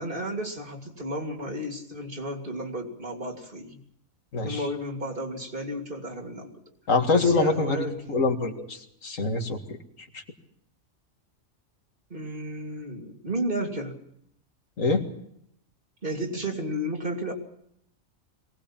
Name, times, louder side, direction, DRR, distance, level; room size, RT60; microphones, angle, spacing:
voice 1, 0.0-3.8 4.4-6.5 7.1-8.0 12.1-14.0 16.0-17.3, right 1 dB, 40° right, 3 dB, 3.0 m, -32 dB
voice 2, 6.9-7.8 8.1-9.6 10.1-10.2 14.8-15.0, left 3 dB, 75° left, 5 dB, 2.4 m, -24 dB
23.0 x 19.0 x 7.2 m, 0.71 s
omnidirectional pair, 1.4 m